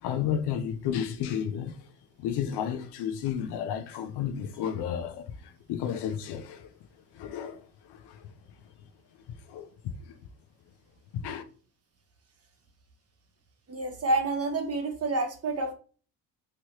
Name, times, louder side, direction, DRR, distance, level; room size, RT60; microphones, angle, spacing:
voice 1, 0.0-1.8 2.2-6.7 7.1-8.3 9.5-10.2 11.1-11.4, left 8 dB, 65° left, 0.6 m, -32 dB
voice 2, 13.7-15.7, right 2 dB, 35° right, 1.1 m, -28 dB
3.0 x 2.7 x 3.1 m
supercardioid pair, 85°, 43 cm